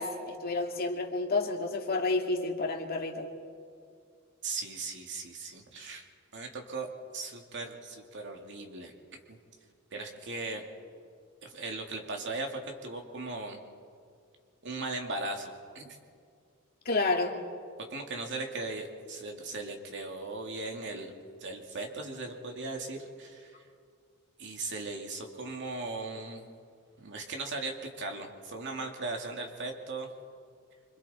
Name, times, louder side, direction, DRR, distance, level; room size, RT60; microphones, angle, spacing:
voice 1, 0.0-3.3 16.9-17.4, left 3 dB, 45° left, 1 dB, 2.2 m, -30 dB
voice 2, 4.4-6.1 6.3-8.9 9.3-9.4 9.9-10.6 11.4-13.6 14.6-16.0 17.9-21.1 21.4-23.7 24.4-26.5 27.0-30.1, right 3 dB, 55° right, 2 dB, 2.4 m, -38 dB
28.0 x 26.0 x 4.3 m, 2.2 s
head